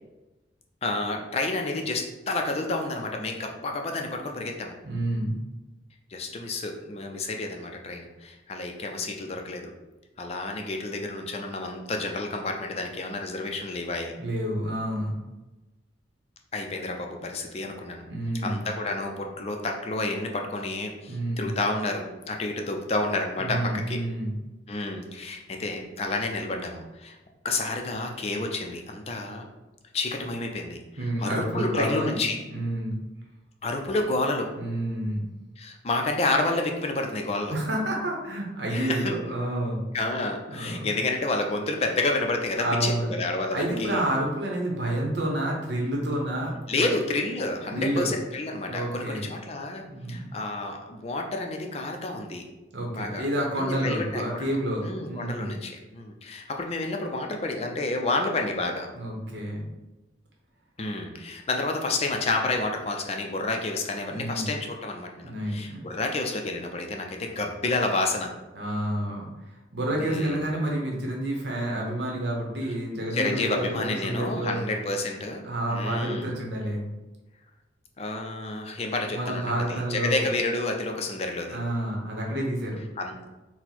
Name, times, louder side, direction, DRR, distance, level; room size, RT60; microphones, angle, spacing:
voice 1, 0.8-4.7 6.1-9.7 10.2-14.1 16.5-18.0 18.4-24.0 24.7-27.2 27.4-29.5 29.9-32.4 33.6-34.5 35.6-37.6 38.7-39.1 39.9-44.0 46.7-49.8 50.1-52.4 52.9-53.2 53.6-54.6 54.8-58.9 60.8-68.3 70.0-70.5 73.1-76.3 78.0-81.6 83.0-83.2, left 2 dB, 35° left, 3 dB, 0.4 m, -30 dB
voice 2, 4.8-5.4 14.2-15.2 18.1-18.6 21.1-21.5 23.4-24.3 31.0-32.2 32.5-32.9 34.6-35.2 37.5-39.8 40.5-40.9 42.6-43.1 43.5-46.9 47.7-48.1 48.7-49.3 49.9-50.3 52.7-55.5 58.9-59.7 64.1-64.5 65.2-65.9 68.5-69.3 69.7-74.6 75.4-76.8 79.1-80.2 81.5-82.8, right 1 dB, 70° right, -1 dB, 1.0 m, -29 dB
4.3 x 2.1 x 4.1 m, 1.1 s
head